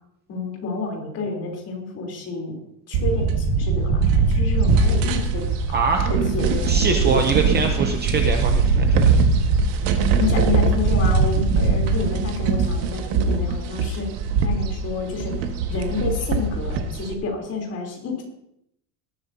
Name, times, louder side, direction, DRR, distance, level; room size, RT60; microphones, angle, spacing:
voice 1, 0.3-2.5 2.9-5.5 6.1-7.3 10.2-14.1 14.4-15.3 15.7-18.2, left 3 dB, 30° left, 0 dB, 3.5 m, -29 dB
sound 1, 2.9-17.1, right 4 dB, 60° right, 1.7 m, -21 dB
voice 2, 5.7-6.1 6.6-9.2, right 5 dB, 20° right, 4 dB, 0.7 m, -23 dB
19.0 x 13.0 x 2.8 m, 0.76 s
cardioid pair, 175°, 47 cm